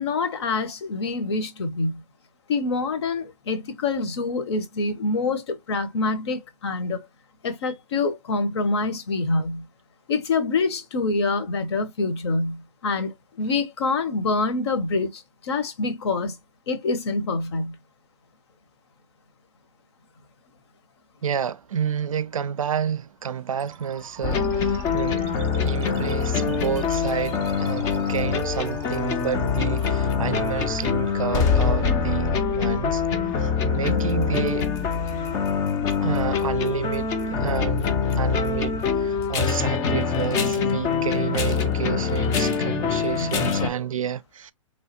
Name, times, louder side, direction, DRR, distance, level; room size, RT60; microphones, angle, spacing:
voice 1, 0.0-2.0 2.5-7.1 7.4-9.6 10.1-16.4 16.7-17.8, left 3 dB, 55° left, 0.8 m, -26 dB
voice 2, 21.2-33.0 33.4-34.6 36.0-44.5, right 8 dB, 80° right, 0.4 m, -30 dB
sound 1, 23.6-34.5, right 9 dB, 25° right, 0.7 m, -45 dB
sound 2, 24.2-43.7, left 6 dB, 20° left, 0.4 m, -24 dB
3.1 x 2.3 x 2.7 m
hypercardioid pair, 130°, 17 cm